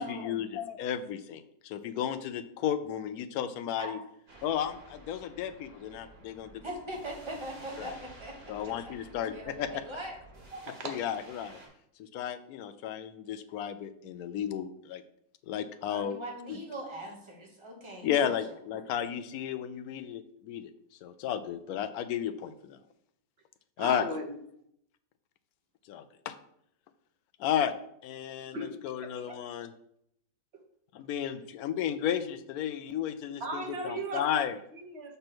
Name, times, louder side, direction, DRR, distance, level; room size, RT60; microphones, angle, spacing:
voice 1, 0.0-4.0 4.4-6.5 7.8-8.0 8.5-9.8 10.8-11.6 12.0-15.0 15.4-16.2 16.5-16.6 18.0-20.7 21.0-22.8 23.8-24.1 25.9-26.3 27.4-27.7 28.0-29.7 30.9-34.5, left 9 dB, 70° left, 11 dB, 0.9 m, -33 dB
sound 1, 4.3-11.7, right 1 dB, 65° right, 2.6 m, -53 dB
voice 2, 6.6-8.3 8.6-8.9 9.3-10.2 15.9-18.3, right 1 dB, 20° right, 0 dB, 1.2 m, -41 dB
voice 3, 10.5-10.9 23.8-24.4 28.5-28.7 29.0-29.3 33.4-34.4 34.7-35.1, right 1 dB, 45° right, 3 dB, 1.0 m, -37 dB
6.8 x 3.4 x 5.9 m, 0.73 s
omnidirectional pair, 1.9 m